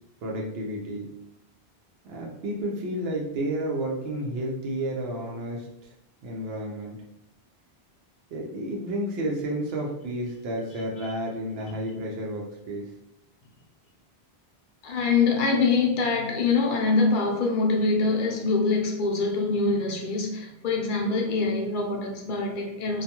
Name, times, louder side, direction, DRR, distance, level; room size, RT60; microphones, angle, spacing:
voice 1, 0.2-1.1 2.0-5.9 6.2-7.0 8.3-12.8, right 1 dB, 80° right, -1 dB, 0.8 m, -31 dB
voice 2, 14.8-23.0, left 4 dB, 60° left, 0 dB, 0.6 m, -24 dB
2.3 x 2.2 x 2.8 m, 0.80 s
omnidirectional pair, 1.0 m